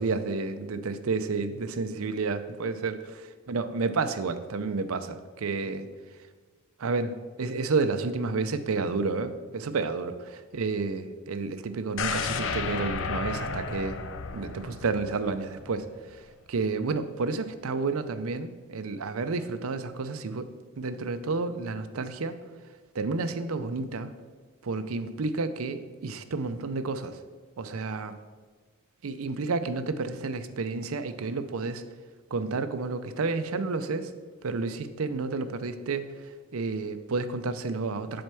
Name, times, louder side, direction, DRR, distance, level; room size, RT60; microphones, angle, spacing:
voice 1, 0.0-5.9 6.8-14.0 14.3-16.2 16.5-20.5 20.8-22.4 22.9-24.1 24.6-27.2 27.6-28.2 29.0-31.8 32.3-34.1 34.4-36.1 36.5-38.2, right 4 dB, 75° right, 11 dB, 0.6 m, -30 dB
sound 1, 12.0-16.0 16.3-16.4, left 5 dB, 60° left, 0.5 m, -33 dB
7.7 x 4.5 x 6.8 m, 1.4 s
head